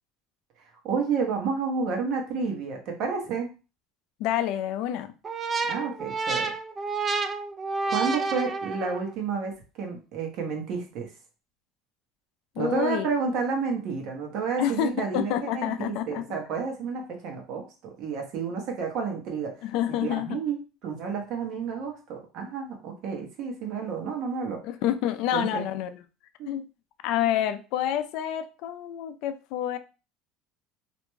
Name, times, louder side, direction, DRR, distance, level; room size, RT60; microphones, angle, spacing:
voice 1, 0.6-3.5 5.7-6.5 7.9-11.1 12.6-24.6 25.3-25.6 26.4-26.5, right 5 dB, 60° right, 2 dB, 0.9 m, -30 dB
voice 2, 4.2-5.1 12.6-13.1 14.6-16.2 19.6-20.4 24.6-26.0 26.5-26.6 27.0-29.8, left 11 dB, 70° left, 10 dB, 0.3 m, -28 dB
sound 1, 5.2-9.1, right 4 dB, 30° right, 0.4 m, -29 dB
2.5 x 2.2 x 3.0 m, 0.32 s
supercardioid pair, 110°, 0 cm